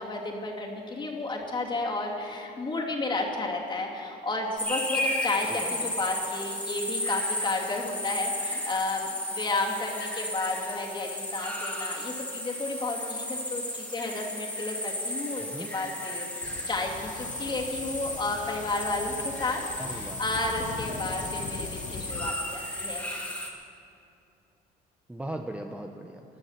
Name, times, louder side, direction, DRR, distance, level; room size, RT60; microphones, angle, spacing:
voice 1, 0.0-23.3, left 2 dB, 30° left, -1 dB, 2.8 m, -32 dB
sound 1, 4.6-23.5, left 1 dB, 10° left, 2.3 m, -34 dB
voice 2, 5.4-5.9 15.4-15.7 19.8-20.2 25.1-26.2, right 1 dB, 5° right, 3 dB, 0.8 m, -38 dB
sound 2, 16.4-22.3, left 6 dB, 50° left, 0.9 m, -41 dB
20.5 x 11.5 x 5.9 m, 2.6 s
cardioid pair, 110°, 17 cm